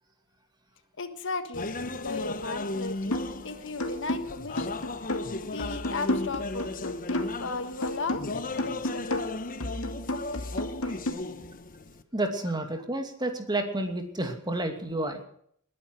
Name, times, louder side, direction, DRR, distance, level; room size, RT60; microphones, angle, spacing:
voice 1, 1.0-9.4, left 3 dB, 60° left, 10 dB, 1.5 m, -36 dB
sound 1, 1.5-12.0, left 2 dB, 40° left, 1.1 m, -36 dB
sound 2, 3.1-3.4 3.8-7.5 7.8-11.1, left 1 dB, 80° left, 2.1 m, -32 dB
voice 2, 12.1-15.2, right 1 dB, 20° right, 5 dB, 2.5 m, -30 dB
20.5 x 10.0 x 6.2 m, 0.64 s
head